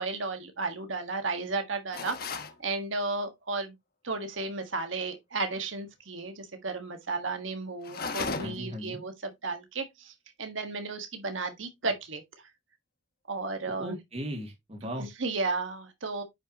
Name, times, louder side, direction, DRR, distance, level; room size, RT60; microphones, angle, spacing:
voice 1, 0.0-3.7 4.0-10.1 10.4-12.2 13.3-14.0 15.0-16.2, right 3 dB, 90° right, 1.6 m, -33 dB
sound 1, 1.9-2.6 7.8-8.8, left 4 dB, 50° left, 1.2 m, -35 dB
voice 2, 8.4-9.0 13.7-15.1, equal, 35° right, 2.5 m, -37 dB
9.5 x 5.6 x 2.9 m
head